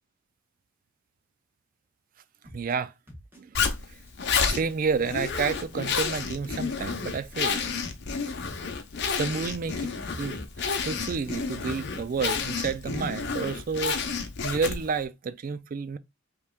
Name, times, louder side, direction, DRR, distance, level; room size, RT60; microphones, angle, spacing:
sound 1, 2.4-2.7 3.1-3.8 4.1-4.7 5.1-5.8 6.1-6.7 7.1-7.8 8.1-8.7 9.1-10.4, equal, 10° right, 1.6 m, -47 dB
voice 1, 2.5-2.9 3.4-3.6 4.5-7.6 9.2-14.0 14.4-16.0, right 5 dB, 45° right, 0.4 m, -30 dB
Zipper (clothing), 3.5-15.0, left 5 dB, 60° left, 0.8 m, -30 dB
5.3 x 3.1 x 2.3 m
head